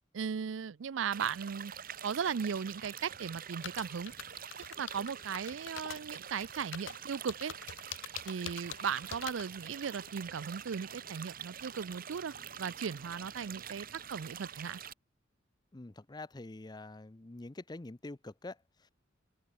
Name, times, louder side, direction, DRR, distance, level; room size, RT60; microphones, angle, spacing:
voice 1, 0.1-1.7 2.0-4.1 4.8-7.5 8.2-14.8, right 6 dB, 80° right, 0.5 m, -37 dB
sound 1, 1.1-14.9, right 8 dB, 50° right, 1.5 m, -46 dB
sound 2, 3.6-9.5, left 10 dB, 80° left, 0.8 m, -43 dB
sound 3, 5.7-7.7 8.1-10.8 11.1-11.2 11.4-11.5, left 4 dB, 55° left, 2.7 m, -60 dB
voice 2, 15.7-18.9, left 2 dB, 20° left, 0.6 m, -46 dB
open air
head